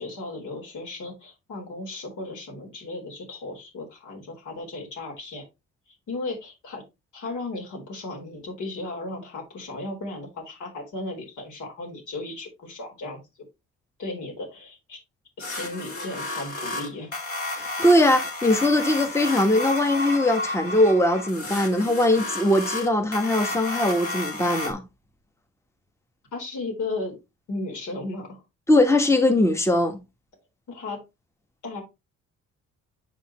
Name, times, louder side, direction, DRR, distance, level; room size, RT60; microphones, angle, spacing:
voice 1, 0.0-5.4 6.1-6.8 7.1-13.2 14.0-15.0 15.4-17.1 26.3-27.2 27.5-28.4 30.7-31.0 31.6-31.8, left 2 dB, 75° left, 4.3 m, -35 dB
sound 1, 15.4-24.7, left 2 dB, 50° left, 2.7 m, -32 dB
voice 2, 17.5-24.8 28.7-30.0, left 1 dB, 10° left, 1.1 m, -21 dB
7.4 x 5.5 x 3.0 m
cardioid pair, 90°, 30 cm